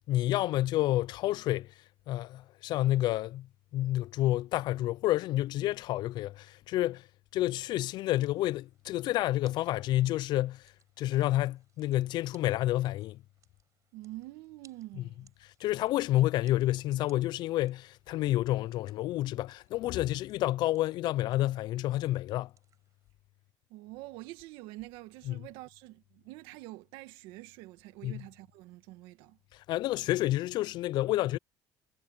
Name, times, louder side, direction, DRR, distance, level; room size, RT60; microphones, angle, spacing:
voice 1, 0.1-1.7 2.1-3.5 3.7-7.1 7.3-10.6 11.0-13.2 15.0-15.1 15.6-22.5 25.3-25.4 28.0-28.2 29.5-31.4, left 15 dB, 60° left, 0.4 m, -29 dB
sound 1, 7.5-23.1, right 8 dB, 40° right, 6.2 m, -69 dB
voice 2, 13.9-15.3 23.7-29.4, right 18 dB, 85° right, 1.8 m, -46 dB
cardioid pair, 120°, 8 cm